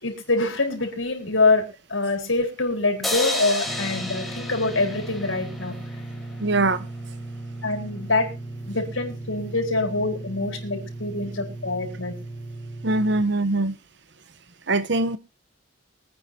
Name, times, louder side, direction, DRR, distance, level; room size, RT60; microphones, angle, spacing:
voice 1, 0.0-5.7 7.6-8.3 8.7-12.1, left 3 dB, 75° left, 4.4 m, -25 dB
sound 1, 3.0-6.3, left 1 dB, ahead, 2.5 m, -31 dB
sound 2, 3.6-13.2, right 2 dB, 20° left, 2.3 m, -36 dB
voice 2, 6.4-6.9 12.8-13.8 14.7-15.2, right 2 dB, 60° right, 1.0 m, -22 dB
24.0 x 9.4 x 2.8 m
head